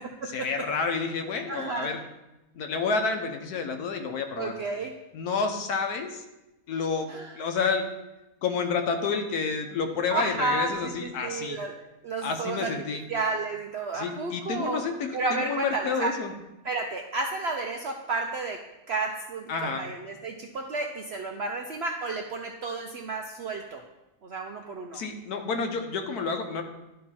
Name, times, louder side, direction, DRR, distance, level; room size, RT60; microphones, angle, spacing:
voice 1, 0.3-2.0 2.5-4.6 5.1-6.2 6.7-7.9 8.4-11.6 12.2-13.1 13.9-16.3 19.5-19.9 24.9-26.6, left 5 dB, 80° left, 5 dB, 1.3 m, -29 dB
voice 2, 1.5-1.9 4.4-4.9 7.1-7.3 10.1-12.7 13.1-14.8 15.1-16.1 16.6-18.6 18.9-23.8 24.2-25.0, right 3 dB, 65° right, 2 dB, 0.6 m, -31 dB
11.5 x 3.8 x 4.2 m, 0.98 s
omnidirectional pair, 1.6 m